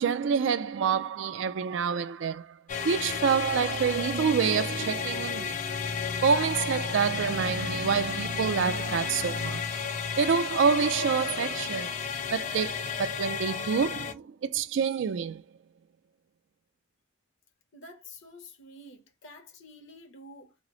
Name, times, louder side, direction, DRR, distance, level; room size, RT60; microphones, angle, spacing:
voice 1, 0.0-2.6 2.8-5.6 6.2-9.8 10.2-12.0 12.3-15.4, right 6 dB, 70° right, 0.4 m, -27 dB
sound 1, 2.7-14.1, left 6 dB, 40° left, 0.4 m, -32 dB
voice 2, 17.7-20.6, left 1 dB, 75° left, 1.0 m, -49 dB
3.0 x 2.0 x 3.8 m
head